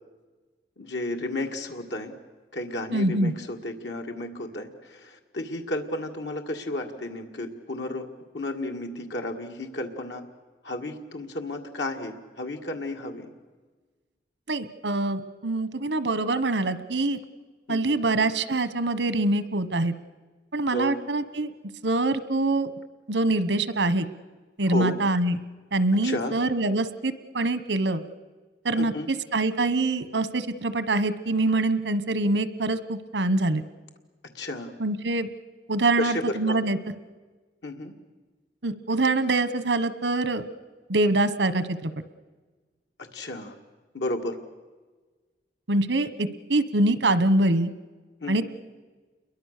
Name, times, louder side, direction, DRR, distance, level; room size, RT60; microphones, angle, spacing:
voice 1, 0.8-2.1 2.5-8.1 8.3-10.2 10.6-13.3 17.7-18.0 20.7-20.9 24.7-24.9 26.0-26.3 28.8-29.1 34.3-34.7 36.0-36.6 37.6-37.9 43.1-43.5 43.9-44.4 48.2-48.4, left 1 dB, 85° left, 3 dB, 2.0 m, -32 dB
voice 2, 2.9-3.3 14.5-17.2 17.7-19.9 20.5-21.5 21.8-22.7 23.1-24.0 24.6-25.4 25.7-28.0 28.6-28.9 29.3-33.6 34.8-35.3 35.7-36.8 38.6-40.4 40.9-41.9 45.7-47.7 48.3-48.4, right 2 dB, 90° right, 13 dB, 1.2 m, -24 dB
29.0 x 22.5 x 6.7 m, 1.3 s
head